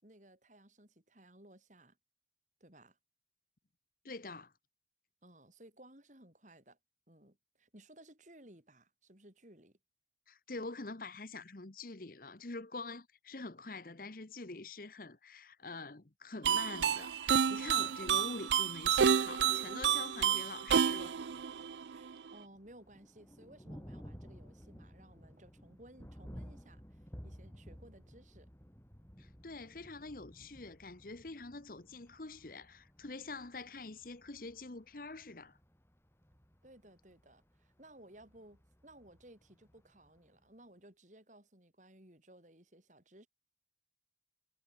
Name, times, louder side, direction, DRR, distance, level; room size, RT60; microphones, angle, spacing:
voice 1, 0.0-2.0 2.6-3.0 5.2-6.8 7.1-9.8 21.9-28.5 36.6-43.3, right 1 dB, 40° right, 4.7 m, -59 dB
voice 2, 4.0-4.5 10.3-21.2 29.2-35.6, left 3 dB, 50° left, 1.1 m, -45 dB
sound 1, 16.4-22.3, right 7 dB, 75° right, 0.5 m, -30 dB
Thunder, 22.5-40.4, equal, 15° left, 5.2 m, -55 dB
head